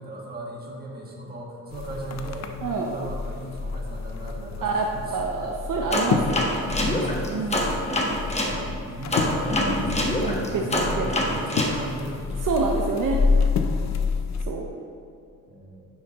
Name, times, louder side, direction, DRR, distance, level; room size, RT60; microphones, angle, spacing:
voice 1, 0.0-2.5 2.8-5.2 5.8-5.9 6.7-7.8 8.4-12.8 15.5-15.9, right 1 dB, 25° right, -3 dB, 1.4 m, -36 dB
sound 1, 1.7-14.4, left 4 dB, 50° left, 0.6 m, -29 dB
voice 2, 4.6-6.6 7.3-7.8 10.2-11.1 12.4-13.2 14.4-14.7, right 4 dB, 65° right, 0 dB, 0.7 m, -27 dB
sound 2, 5.9-8.6 9.1-11.8, left 1 dB, 20° left, 1.0 m, -25 dB
10.0 x 5.7 x 2.9 m, 2.5 s
cardioid pair, 120°, 35 cm